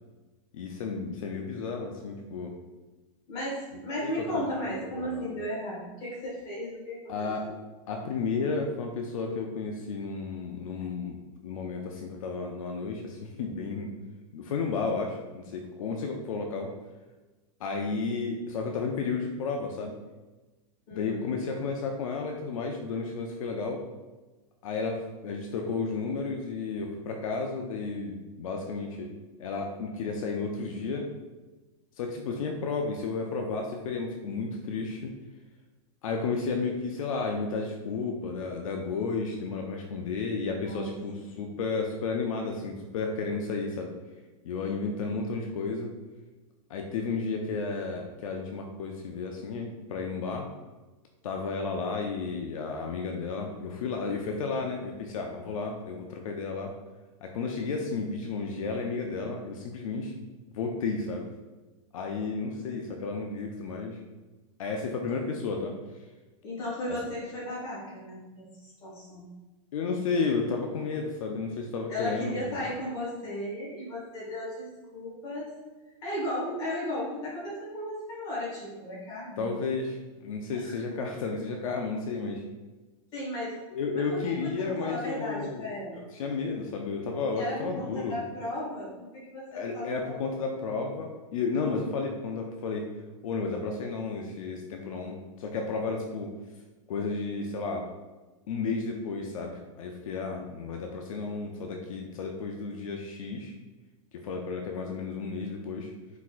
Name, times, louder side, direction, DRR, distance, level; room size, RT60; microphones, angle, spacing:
voice 1, 0.5-2.6 4.0-5.3 7.1-7.5 7.9-11.2 11.4-13.9 14.3-16.7 17.6-20.0 20.9-23.9 24.6-29.1 29.4-31.1 32.0-35.2 36.0-44.0 44.4-45.9 46.7-50.5 51.2-56.7 57.2-60.1 60.5-61.3 61.9-64.0 64.6-65.8 69.7-72.7 79.4-82.4 83.7-85.7 85.9-88.2 89.5-92.9 93.2-96.3 96.9-97.9 98.5-103.5 104.1-105.9, left 4 dB, 70° left, 2 dB, 0.5 m, -32 dB
voice 2, 3.3-7.1 7.4-7.5 20.9-21.3 40.5-40.9 66.4-69.3 71.9-75.5 76.0-79.6 80.5-80.7 83.1-83.5 83.9-86.0 87.4-90.3, left 1 dB, 20° left, -6 dB, 1.5 m, -35 dB
4.3 x 4.0 x 2.5 m, 1.2 s
supercardioid pair, 180°, 18 cm